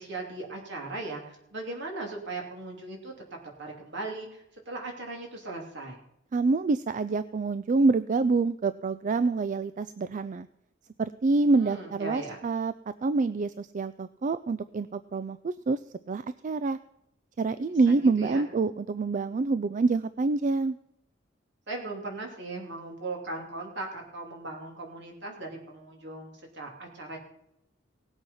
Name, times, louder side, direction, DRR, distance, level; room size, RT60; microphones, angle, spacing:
voice 1, 0.0-3.1 3.6-6.0 11.6-12.4 17.9-18.4 21.7-27.2, right 2 dB, 65° right, 0 dB, 3.1 m, -38 dB
voice 2, 6.3-10.5 11.0-12.7 13.0-15.8 16.1-16.8 17.4-20.8, right 3 dB, 40° right, 14 dB, 0.4 m, -26 dB
18.0 x 8.0 x 5.7 m, 0.79 s
head